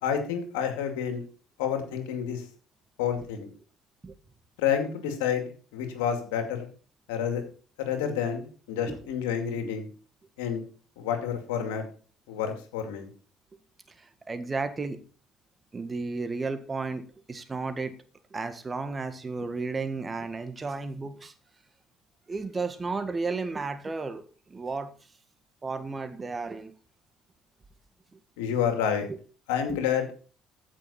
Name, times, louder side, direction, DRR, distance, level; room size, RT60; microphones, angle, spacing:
voice 1, 0.0-1.2 1.6-2.4 3.0-3.5 4.6-5.4 5.7-6.7 7.1-7.4 7.8-9.9 10.4-10.6 11.0-11.8 12.3-13.1 28.4-29.1 29.5-30.1, left 8 dB, 85° left, 5 dB, 2.3 m, -29 dB
voice 2, 14.0-15.0 15.7-17.0 17.3-17.9 18.3-21.3 22.3-24.2 24.5-24.9 25.6-26.7 29.1-29.2, right 4 dB, 30° right, 9 dB, 1.6 m, -33 dB
15.0 x 6.3 x 4.3 m, 0.40 s
hypercardioid pair, 65°, 0 cm